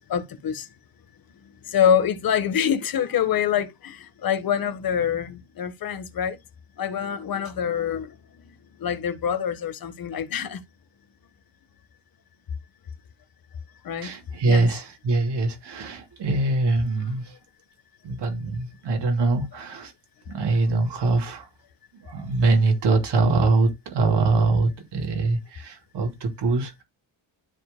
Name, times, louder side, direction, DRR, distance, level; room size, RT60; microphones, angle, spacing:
voice 1, 0.1-0.7 1.7-6.4 6.8-8.1 8.8-10.6 13.8-14.1 14.5-14.7, left 8 dB, 55° left, 1.4 m, -25 dB
voice 2, 14.0-17.3 18.0-19.9 20.3-21.5 22.0-26.8, right 3 dB, 70° right, 3.0 m, -23 dB
13.0 x 4.7 x 2.2 m
wide cardioid pair, 175°, 43 cm